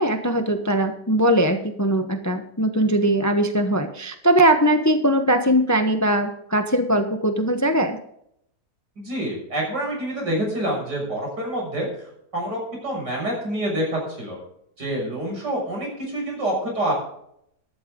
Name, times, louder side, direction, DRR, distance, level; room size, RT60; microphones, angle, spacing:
voice 1, 0.0-8.0, right 1 dB, 15° left, 6 dB, 0.8 m, -20 dB
voice 2, 9.0-11.9 12.3-14.4 14.8-16.9, right 1 dB, 85° right, -1 dB, 7.0 m, -27 dB
13.5 x 12.5 x 3.8 m, 0.72 s
omnidirectional pair, 1.8 m